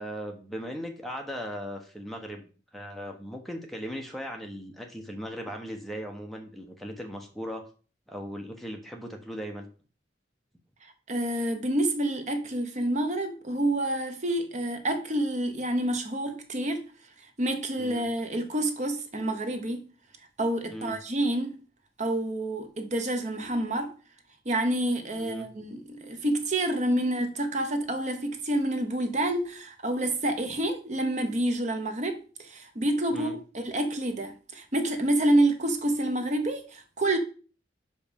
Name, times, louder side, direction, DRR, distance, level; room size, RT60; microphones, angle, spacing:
voice 1, 0.0-7.6 8.1-9.7 17.8-18.0 20.7-21.0 25.2-25.5 33.1-33.3, equal, ahead, 1.0 m, -38 dB
voice 2, 10.8-16.8 17.4-19.9 20.4-21.5 22.0-23.9 24.4-37.2, right 1 dB, 40° right, 0.9 m, -28 dB
5.8 x 5.3 x 5.2 m
head